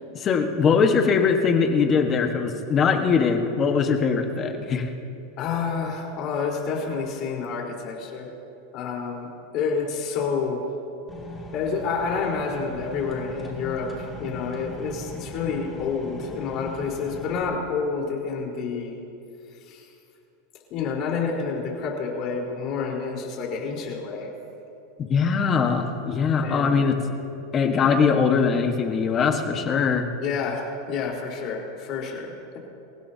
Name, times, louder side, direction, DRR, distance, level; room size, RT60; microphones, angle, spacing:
voice 1, 0.1-4.9 25.0-27.0 27.5-30.1, left 5 dB, 30° left, 4 dB, 1.4 m, -21 dB
voice 2, 5.4-8.3 8.7-9.3 9.5-10.6 11.5-19.0 19.7-19.9 20.7-24.3 26.4-26.9 30.2-32.6, left 5 dB, 45° left, -1 dB, 4.2 m, -29 dB
sound 1, 11.1-17.4, left 1 dB, 15° left, 2.5 m, -39 dB
27.0 x 16.5 x 2.9 m, 2.7 s
supercardioid pair, 140°, 0 cm